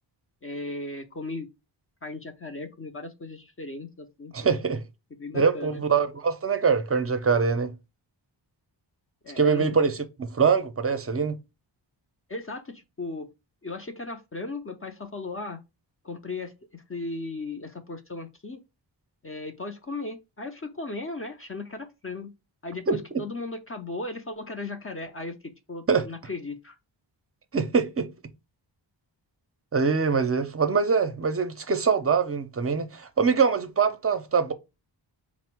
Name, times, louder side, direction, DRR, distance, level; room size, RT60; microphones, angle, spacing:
voice 1, 0.4-1.5 2.0-4.6 5.2-5.8 9.2-9.9 12.3-13.3 13.6-15.6 16.0-18.6 19.2-22.3 22.6-26.8, left 2 dB, 30° left, 0.5 m, -36 dB
voice 2, 4.3-4.8 5.3-7.7 9.4-11.4 22.9-23.2 25.9-26.0 27.5-28.1 29.7-34.5, right 5 dB, 30° right, 0.5 m, -24 dB
4.2 x 2.0 x 4.3 m
wide cardioid pair, 130°, 45 cm